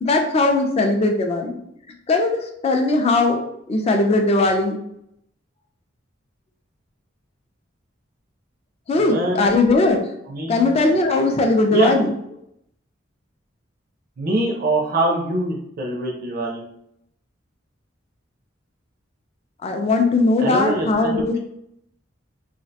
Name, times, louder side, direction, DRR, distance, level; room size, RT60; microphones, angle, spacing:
voice 1, 0.0-1.6 2.1-3.4 3.7-4.8 8.9-10.0 10.5-12.1 19.6-21.4, left 2 dB, 30° left, 3 dB, 0.3 m, -19 dB
voice 2, 9.0-9.5 10.3-10.7 11.7-11.9 14.2-16.6 20.4-21.2, right 2 dB, 50° right, -1 dB, 0.4 m, -23 dB
2.4 x 2.1 x 2.6 m, 0.75 s
head